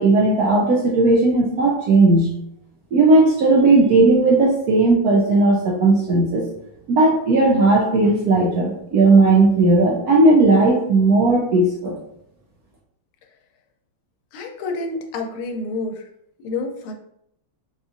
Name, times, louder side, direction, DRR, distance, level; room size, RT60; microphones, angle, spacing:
voice 1, 0.0-2.3 2.9-6.4 6.9-11.9, right 2 dB, 75° right, -2 dB, 0.8 m, -16 dB
voice 2, 14.3-16.1 16.4-16.9, left 3 dB, 90° left, 4 dB, 1.4 m, -28 dB
4.2 x 2.4 x 2.5 m, 0.74 s
omnidirectional pair, 2.2 m